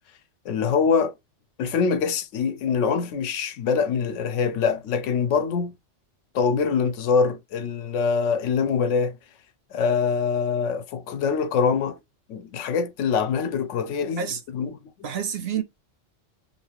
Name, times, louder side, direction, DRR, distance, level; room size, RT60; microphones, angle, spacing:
voice 1, 0.5-1.1 1.6-5.7 6.3-9.2 9.7-12.0 12.3-14.2 14.5-14.8, left 5 dB, 80° left, 0.9 m, -24 dB
voice 2, 15.0-15.6, right 8 dB, 65° right, 0.7 m, -28 dB
2.8 x 2.6 x 2.8 m
omnidirectional pair, 1.2 m